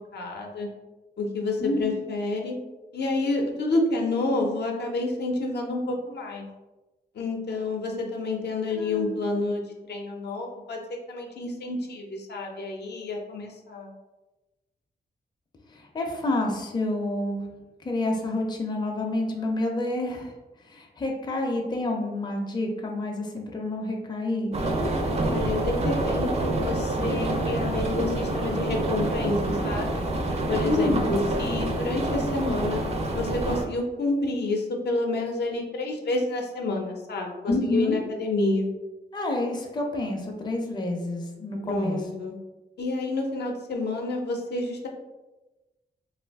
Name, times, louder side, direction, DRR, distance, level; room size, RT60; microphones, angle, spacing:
voice 1, 0.1-0.7 1.2-2.6 2.9-6.5 7.1-10.8 11.1-13.9 25.1-30.0 30.5-32.8 33.1-38.7 41.6-42.3 42.8-44.9, left 2 dB, 75° left, 1 dB, 0.5 m, -29 dB
voice 2, 1.6-2.0 8.7-9.1 15.7-17.5 17.8-20.3 20.6-24.5 30.6-31.0 37.5-38.0 39.1-42.0, left 2 dB, 25° left, 1 dB, 0.4 m, -28 dB
sound 1, 24.5-33.7, right 1 dB, 40° right, 0.4 m, -27 dB
2.5 x 2.4 x 3.4 m, 1.1 s
wide cardioid pair, 120°, 18 cm